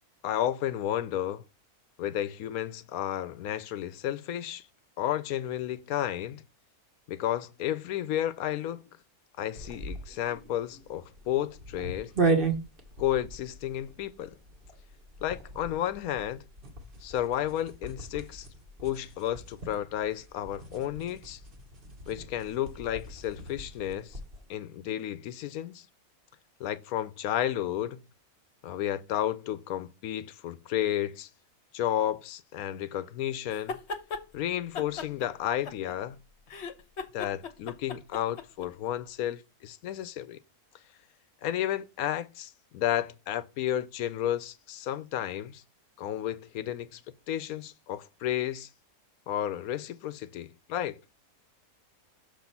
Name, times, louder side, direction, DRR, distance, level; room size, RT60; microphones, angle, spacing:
voice 1, 0.2-1.4 2.0-4.6 5.0-6.4 7.1-8.8 9.4-12.1 13.0-14.3 15.2-16.4 17.0-18.5 18.8-21.4 22.1-24.2 24.5-25.9 26.6-28.0 28.6-31.3 31.7-33.8 34.3-36.2 37.1-40.4 41.4-45.6 46.0-47.0 47.3-48.7 49.3-51.0, left 11 dB, 75° left, 1.0 m, -32 dB
sound 1, 9.5-24.5, right 3 dB, 40° right, 1.4 m, -36 dB
sound 2, 33.5-34.2 34.7-36.1 36.5-38.7, left 5 dB, 50° left, 1.0 m, -37 dB
6.5 x 4.1 x 5.8 m
omnidirectional pair, 1.6 m